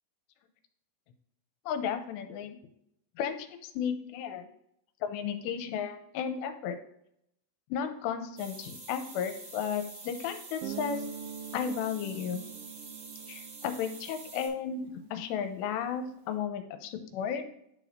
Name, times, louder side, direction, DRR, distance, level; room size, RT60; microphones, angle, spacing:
voice 1, 1.7-2.6 3.2-4.5 5.0-6.8 7.7-11.0 11.5-12.4 13.3-17.4, left 7 dB, 85° left, 7 dB, 2.8 m, -34 dB
sound 1, 8.4-14.5, right 3 dB, 60° right, 1.9 m, -47 dB
Guitar, 10.6-15.2, right 8 dB, 80° right, 2.3 m, -43 dB
11.0 x 5.1 x 2.6 m, 0.76 s
omnidirectional pair, 5.0 m